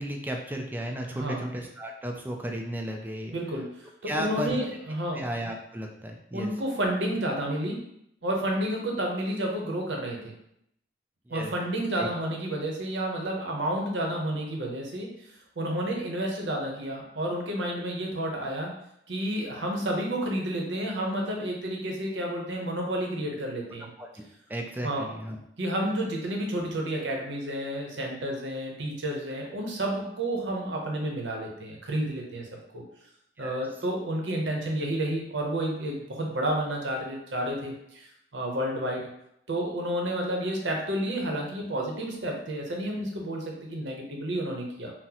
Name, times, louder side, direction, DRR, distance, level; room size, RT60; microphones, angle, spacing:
voice 1, 0.0-3.4 4.1-4.5 5.1-6.5 11.3-11.5 12.0-12.3 23.8-24.1 24.5-25.4 33.4-33.6, equal, 10° right, 2 dB, 0.3 m, -34 dB
voice 2, 1.1-1.4 3.3-5.2 6.3-7.8 8.2-10.3 11.3-15.1 15.6-18.7 19.1-23.9 24.8-25.1 25.6-32.5 32.7-32.8 33.4-39.1 39.5-44.9, right 1 dB, 90° right, 0 dB, 0.7 m, -30 dB
3.8 x 2.0 x 2.8 m, 0.76 s
head